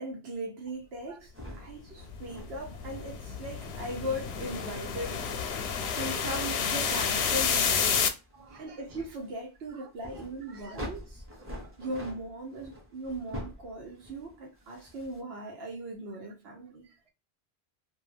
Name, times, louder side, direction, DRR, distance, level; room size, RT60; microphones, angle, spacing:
voice 1, 0.0-5.2 6.0-8.1 8.5-11.2 11.8-16.9, right 1 dB, 75° right, 0.9 m, -38 dB
sound 1, 1.3-15.2, left 1 dB, 15° right, 0.8 m, -47 dB
sound 2, 2.1-8.1, left 6 dB, 85° left, 0.8 m, -30 dB
voice 2, 8.3-8.8 9.7-9.9 10.2-10.9 11.4-11.8 16.8-17.1, right 4 dB, 45° right, 0.5 m, -55 dB
2.3 x 2.3 x 3.1 m
omnidirectional pair, 1.0 m